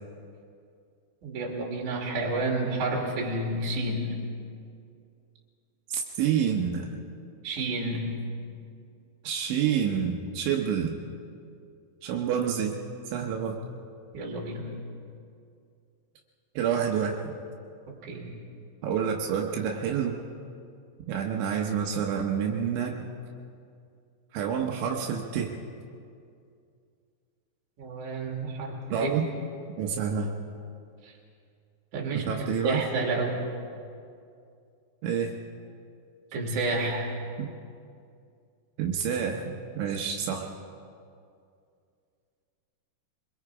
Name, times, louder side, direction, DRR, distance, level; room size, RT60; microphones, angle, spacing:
voice 1, 1.2-4.1 7.4-8.2 14.1-14.8 17.9-18.3 27.8-29.1 31.0-31.1 31.9-33.4 36.3-37.1, right 2 dB, 45° right, 0 dB, 3.8 m, -30 dB
voice 2, 5.9-6.9 9.3-11.0 12.0-12.7 13.1-13.6 16.6-17.2 18.8-20.2 21.1-23.0 24.3-25.5 28.9-29.2 29.8-30.3 32.3-32.8 35.0-35.3 37.4-37.5 38.8-40.5, right 8 dB, 80° right, 0 dB, 3.5 m, -28 dB
25.0 x 21.5 x 4.9 m, 2.4 s
omnidirectional pair, 5.3 m